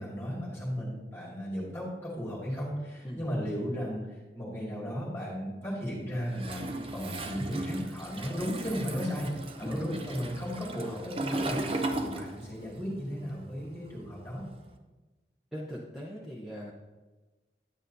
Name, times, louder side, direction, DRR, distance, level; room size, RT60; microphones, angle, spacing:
voice 1, 0.0-6.6 6.9-9.3 9.6-14.4, equal, 15° left, -5 dB, 2.0 m, -35 dB
Toilet flush, 6.3-12.8 13.0-14.6, right 2 dB, 30° right, 0.5 m, -36 dB
voice 2, 15.5-16.7, equal, ahead, -5 dB, 0.8 m, -40 dB
10.0 x 9.0 x 2.7 m, 1.2 s
head